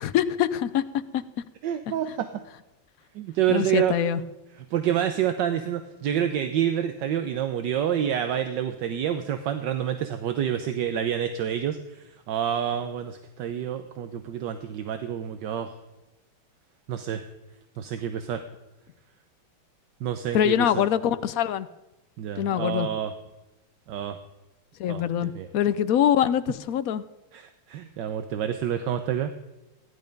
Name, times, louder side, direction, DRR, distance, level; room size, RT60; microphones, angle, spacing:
voice 1, 0.0-1.2 3.5-4.2 20.3-21.7 22.4-22.9 24.8-27.0, left 10 dB, 65° left, 13 dB, 0.9 m, -24 dB
voice 2, 1.6-2.4 3.1-3.9 4.7-15.7 16.9-17.2 17.8-18.4 20.0-20.8 22.2-23.1 23.9-24.2 24.9-25.0 25.3-25.5 27.3-29.3, right 9 dB, 75° right, 8 dB, 1.4 m, -28 dB
15.5 x 10.5 x 5.2 m, 1.0 s
omnidirectional pair, 2.1 m